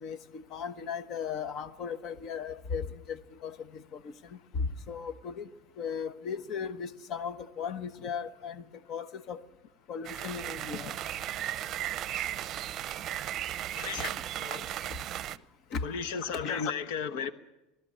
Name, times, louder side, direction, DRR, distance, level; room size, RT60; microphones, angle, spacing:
voice 1, 0.0-5.5 5.8-9.4 9.9-10.9 15.7-15.9 16.2-16.7, left 6 dB, 50° left, 12 dB, 1.1 m, -37 dB
sound 1, 10.0-15.4, right 12 dB, 40° right, 0.7 m, -36 dB
voice 2, 13.7-14.7 15.8-17.3, left 6 dB, 75° left, 11 dB, 1.1 m, -35 dB
21.5 x 13.5 x 9.7 m, 0.98 s
supercardioid pair, 130°, 0 cm